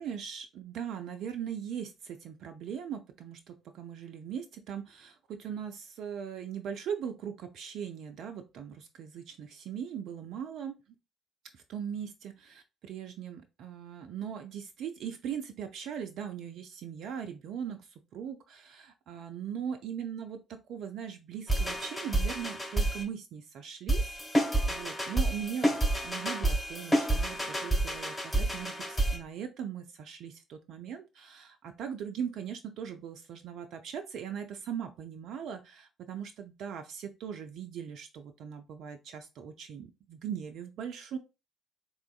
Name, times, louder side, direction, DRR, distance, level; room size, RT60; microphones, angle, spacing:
voice 1, 0.0-10.8 11.5-24.2 24.7-41.2, right 8 dB, 55° right, 6 dB, 0.3 m, -40 dB
sound 1, 21.5-23.0 23.9-29.2, right 1 dB, 15° left, 1.6 m, -29 dB
3.5 x 3.0 x 2.3 m, 0.28 s
figure-of-eight pair, 45°, 0 cm